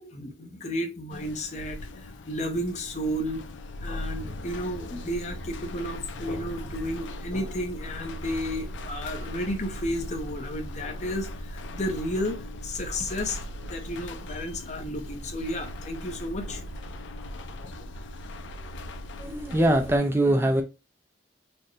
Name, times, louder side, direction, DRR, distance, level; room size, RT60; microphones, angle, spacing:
voice 1, 0.0-3.4 3.8-13.4 13.7-16.6, equal, 40° left, 0.7 m, -32 dB
sound 1, 1.1-20.0, left 1 dB, 80° left, 0.5 m, -38 dB
voice 2, 19.2-20.6, right 1 dB, 10° right, 0.4 m, -22 dB
4.2 x 2.1 x 3.1 m
head